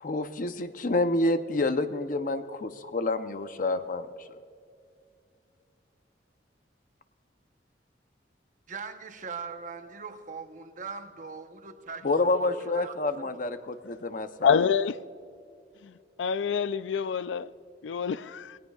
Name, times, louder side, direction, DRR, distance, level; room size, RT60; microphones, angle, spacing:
voice 1, 0.0-4.1 12.0-14.6, left 2 dB, 45° left, 0.7 m, -28 dB
voice 2, 8.7-12.1 12.4-13.4, right 5 dB, 45° right, 0.9 m, -41 dB
voice 3, 14.4-15.0 15.8-15.9 16.2-17.5 17.8-18.6, left 6 dB, 90° left, 0.4 m, -26 dB
19.5 x 17.5 x 2.4 m
head